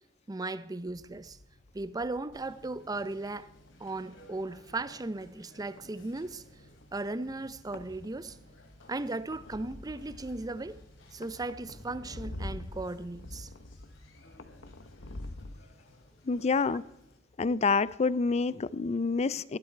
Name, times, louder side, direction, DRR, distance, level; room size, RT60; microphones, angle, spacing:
voice 1, 0.3-1.4 1.7-3.5 3.8-6.4 6.9-8.4 8.9-10.8 11.1-13.5, right 2 dB, 20° right, 0.6 m, -36 dB
sound 1, 0.9-15.5, left 1 dB, 70° left, 1.0 m, -47 dB
Conversation, 2.3-17.2, left 1 dB, 85° left, 2.9 m, -57 dB
voice 2, 16.3-16.8 17.4-19.6, left 4 dB, 35° left, 0.4 m, -27 dB
19.0 x 12.0 x 4.6 m
head